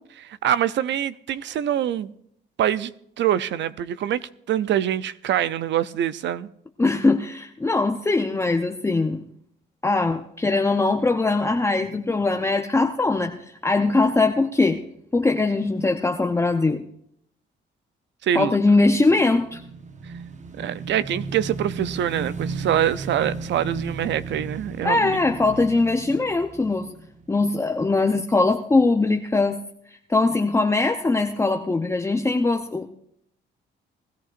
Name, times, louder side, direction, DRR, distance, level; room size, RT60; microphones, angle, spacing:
voice 1, 0.2-2.1 2.6-2.9 3.2-4.2 4.5-6.5 8.9-9.0 18.2-18.5 20.6-25.2, right 10 dB, 65° right, 0.6 m, -24 dB
voice 2, 6.8-9.2 9.8-14.8 15.1-16.8 18.3-19.6 24.8-26.9 27.3-29.6 30.1-32.9, left 3 dB, 15° left, 0.7 m, -21 dB
Motorcycle / Engine, 19.1-27.6, right 4 dB, 35° right, 1.0 m, -35 dB
20.0 x 14.0 x 2.5 m
cardioid pair, 90°, 20 cm